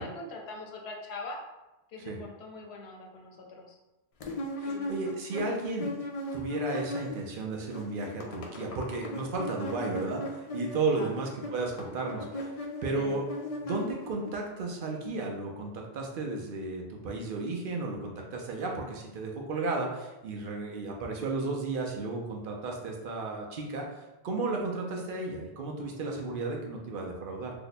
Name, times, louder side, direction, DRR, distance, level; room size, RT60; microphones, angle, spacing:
voice 1, 0.0-1.4 1.9-3.8 4.6-4.9 10.9-11.1 12.9-13.2, left 3 dB, 80° left, 1 dB, 0.9 m, -42 dB
sound 1, 4.2-7.4 7.6-14.3, left 1 dB, 55° left, 0.4 m, -38 dB
voice 2, 4.6-5.9 6.3-13.2 13.6-23.9 24.2-27.5, right 3 dB, 60° right, 0 dB, 0.7 m, -33 dB
2.8 x 2.1 x 4.0 m, 1.0 s
omnidirectional pair, 1.1 m